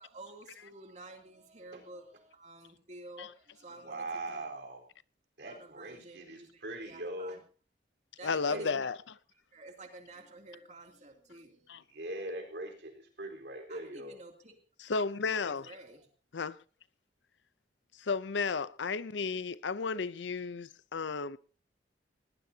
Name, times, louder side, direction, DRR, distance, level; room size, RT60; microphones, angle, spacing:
voice 1, 0.0-4.5 5.5-7.4 8.2-8.9 9.5-11.8 13.7-14.6 15.4-16.1, right 2 dB, 40° right, 2.8 m, -51 dB
voice 2, 3.8-4.9 5.4-7.4 8.5-8.8 11.9-14.1, right 1 dB, 65° right, 4.2 m, -41 dB
voice 3, 8.2-9.0 11.7-11.8 14.8-15.7 16.3-16.6 18.0-21.4, left 4 dB, 75° left, 0.6 m, -33 dB
20.0 x 18.0 x 2.8 m
head